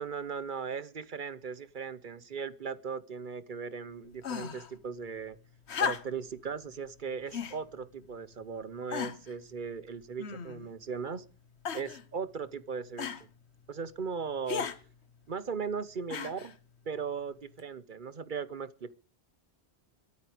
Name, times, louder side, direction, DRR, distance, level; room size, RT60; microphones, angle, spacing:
voice 1, 0.0-5.4 5.8-11.2 11.7-13.3 13.7-14.7 15.3-16.5 16.9-18.9, right 5 dB, 50° right, 17 dB, 1.0 m, -38 dB
sound 1, 4.2-4.7 5.7-6.3 7.3-7.6 8.3-8.4 8.9-9.3 10.2-10.7 11.6-12.0 13.0-13.2 14.5-14.8 16.1-16.5 17.6-17.7, left 7 dB, 90° left, 1.4 m, -35 dB
23.0 x 8.6 x 5.0 m, 0.35 s
omnidirectional pair, 1.1 m